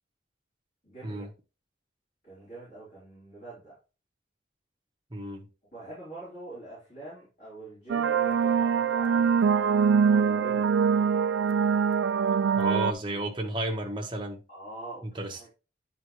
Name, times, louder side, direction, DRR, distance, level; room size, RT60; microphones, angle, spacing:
voice 1, 0.8-1.3 2.2-3.8 5.7-9.7 10.1-10.8 14.5-15.5, right 2 dB, 40° left, 4.2 m, -44 dB
voice 2, 5.1-5.5 12.4-14.4 15.1-15.5, right 1 dB, 25° right, 1.1 m, -32 dB
sound 1, 7.9-12.9, right 6 dB, 70° right, 0.3 m, -23 dB
9.5 x 3.7 x 3.2 m
head